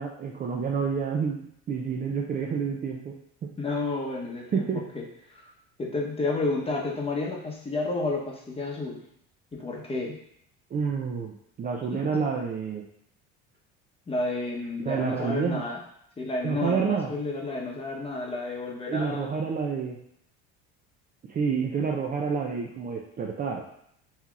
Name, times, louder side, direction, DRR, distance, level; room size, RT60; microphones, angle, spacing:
voice 1, 0.0-3.1 4.5-4.8 10.7-12.8 14.8-15.6 16.4-17.1 18.9-20.0 21.3-23.6, right 6 dB, 30° right, 0 dB, 0.4 m, -29 dB
voice 2, 3.6-5.0 5.3-5.5 5.8-9.0 9.5-10.2 11.9-12.3 14.1-15.8 16.2-19.3, left 3 dB, 20° left, -1 dB, 0.9 m, -31 dB
5.6 x 2.8 x 2.4 m, 0.72 s
cardioid pair, 105°, 30 cm